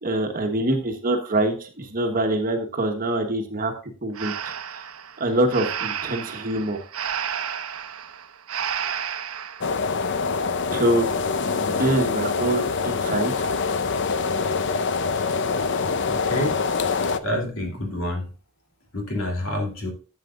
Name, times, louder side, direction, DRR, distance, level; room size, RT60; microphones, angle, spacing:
voice 1, 0.0-4.8 5.2-6.8 10.7-11.1 11.5-13.5 15.1-15.2, right 1 dB, 40° right, 5 dB, 1.2 m, -25 dB
Breathing, 4.1-9.7, right 8 dB, 85° right, 0.7 m, -31 dB
sound 1, 9.6-17.2, left 4 dB, 55° left, 0.6 m, -25 dB
voice 2, 16.0-16.7 17.2-18.3 18.9-19.9, left 1 dB, 75° left, 1 dB, 2.8 m, -28 dB
11.5 x 7.5 x 2.5 m, 0.36 s
head